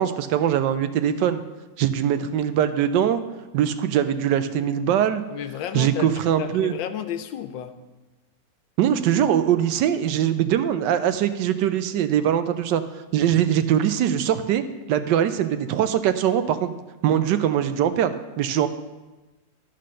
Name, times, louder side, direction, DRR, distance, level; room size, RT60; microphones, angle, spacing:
voice 1, 0.0-1.4 1.8-3.2 3.5-5.2 5.7-6.7 8.8-12.8 13.1-14.6 14.9-16.7 17.0-18.7, right 10 dB, 75° right, 10 dB, 1.2 m, -22 dB
voice 2, 5.3-6.1 6.4-7.7 13.2-13.4, left 9 dB, 85° left, 9 dB, 1.4 m, -32 dB
12.5 x 4.2 x 6.3 m, 1.1 s
omnidirectional pair, 2.0 m